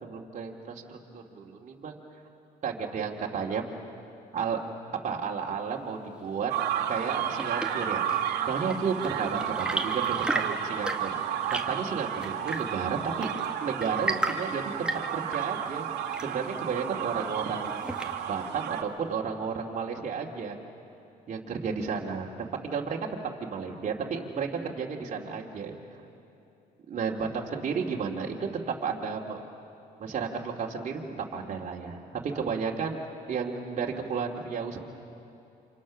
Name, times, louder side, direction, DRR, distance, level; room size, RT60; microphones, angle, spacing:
voice 1, 0.0-2.0 2.6-3.7 4.3-4.6 5.0-6.5 6.9-11.3 11.6-13.3 13.6-15.9 16.2-17.8 18.3-20.6 21.3-23.0 23.4-25.7 26.9-28.5 28.8-29.4 30.0-31.0 31.3-32.0 32.2-33.0 33.3-34.8, right 5 dB, 45° right, -1 dB, 2.5 m, -32 dB
sound 1, 6.5-18.8, right 9 dB, 75° right, 2.0 m, -32 dB
Chirp tweet / Engine / Tap, 6.9-18.5, right 1 dB, 5° right, 1.8 m, -36 dB
28.5 x 26.5 x 6.3 m, 2.8 s
cardioid pair, 110°, 17 cm